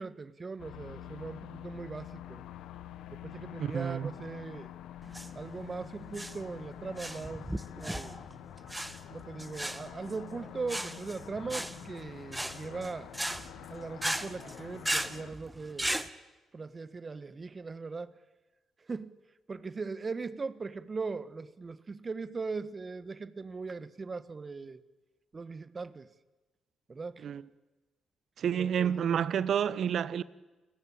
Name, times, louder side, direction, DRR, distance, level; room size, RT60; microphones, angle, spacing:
voice 1, 0.0-2.4 3.1-4.7 5.3-7.5 7.8-8.2 9.1-13.1 13.7-16.1 16.5-18.2 18.8-19.2 19.5-24.8 25.3-26.1 26.9-27.3 28.5-28.9, right 4 dB, 35° right, 1.7 m, -39 dB
sound 1, 0.6-15.3, left 12 dB, 80° left, 1.3 m, -47 dB
voice 2, 3.6-4.1 27.2-27.4 28.4-30.2, right 8 dB, 65° right, 1.1 m, -29 dB
sound 2, 5.0-16.1, right 1 dB, 10° right, 1.8 m, -37 dB
29.5 x 20.5 x 8.7 m
supercardioid pair, 55°, 0 cm